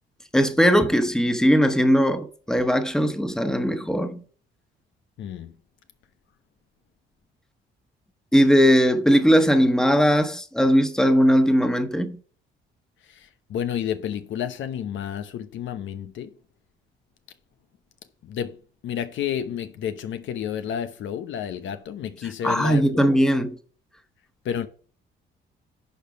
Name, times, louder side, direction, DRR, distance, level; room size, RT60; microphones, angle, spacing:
voice 1, 0.3-4.2 8.3-12.2 22.4-23.5, equal, 5° left, 1.2 m, -19 dB
voice 2, 5.2-5.6 13.0-16.4 18.2-23.1 24.4-24.7, left 9 dB, 75° left, 0.9 m, -31 dB
11.0 x 4.6 x 5.0 m
cardioid pair, 90°, 20 cm